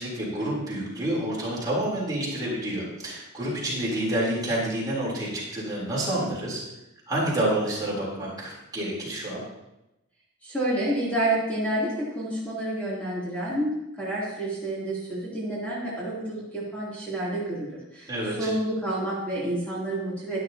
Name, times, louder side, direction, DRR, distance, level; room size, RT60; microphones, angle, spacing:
voice 1, 0.0-6.6 7.1-9.4 18.1-18.5, right 1 dB, 20° right, -6 dB, 3.6 m, -28 dB
voice 2, 10.4-18.1 18.4-20.4, right 1 dB, 5° left, -8 dB, 3.0 m, -29 dB
12.0 x 11.5 x 2.9 m, 0.92 s
head